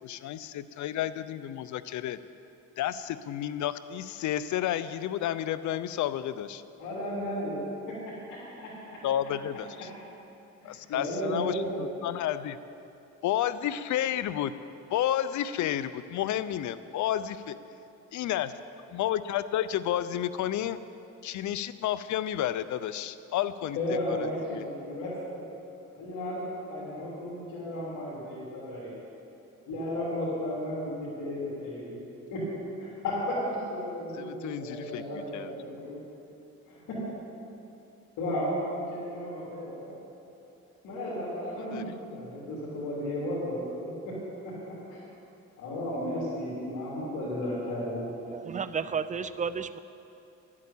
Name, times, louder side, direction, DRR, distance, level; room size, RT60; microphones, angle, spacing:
voice 1, 0.0-2.2 2.8-6.6 9.0-9.9 10.6-12.6 13.2-14.5 14.9-17.5 18.1-18.5 18.9-20.8 21.2-24.6 34.1-35.7 41.7-41.8, left 11 dB, 70° left, 0.6 m, -31 dB
voice 2, 6.8-7.6 8.3-9.0 10.6-11.9 23.7-25.4 25.9-28.9 29.7-32.0 32.3-32.4 32.8-33.4 33.7-36.0 36.7-37.0 38.2-39.9 40.8-44.1 44.4-45.0 45.6-48.1, left 1 dB, 90° left, 3.2 m, -34 dB
voice 3, 48.3-49.8, right 6 dB, 25° right, 0.5 m, -32 dB
11.5 x 8.6 x 8.4 m
cardioid pair, 90°, 30 cm